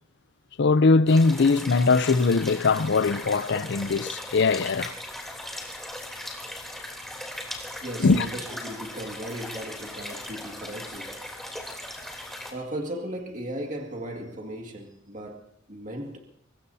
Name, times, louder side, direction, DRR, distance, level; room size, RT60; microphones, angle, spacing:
voice 1, 0.6-4.9 8.0-8.3, left 4 dB, 60° left, 0.6 m, -21 dB
sound 1, 1.1-12.5, left 1 dB, ahead, 3.2 m, -38 dB
voice 2, 7.8-11.2 12.1-12.2 12.5-16.2, right 1 dB, 40° right, 2.1 m, -36 dB
25.0 x 21.0 x 2.8 m
head